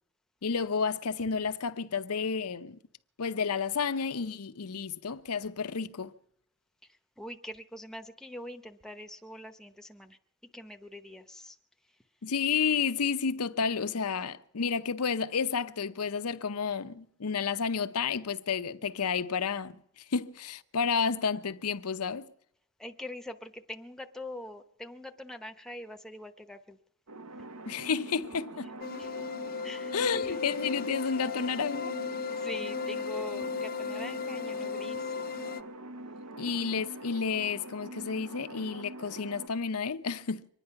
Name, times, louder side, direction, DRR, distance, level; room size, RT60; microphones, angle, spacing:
voice 1, 0.4-2.8 3.2-6.1 12.2-19.8 20.1-22.3 27.7-28.7 29.9-31.9 36.4-40.5, left 5 dB, 85° left, 0.7 m, -31 dB
voice 2, 7.2-10.2 10.5-11.6 22.8-26.8 29.0-29.1 29.6-30.4 32.4-35.1, left 1 dB, ahead, 0.8 m, -43 dB
sound 1, 27.1-39.5, right 2 dB, 75° right, 1.0 m, -44 dB
sound 2, 28.8-35.6, left 5 dB, 40° left, 0.5 m, -35 dB
24.5 x 10.0 x 5.7 m
head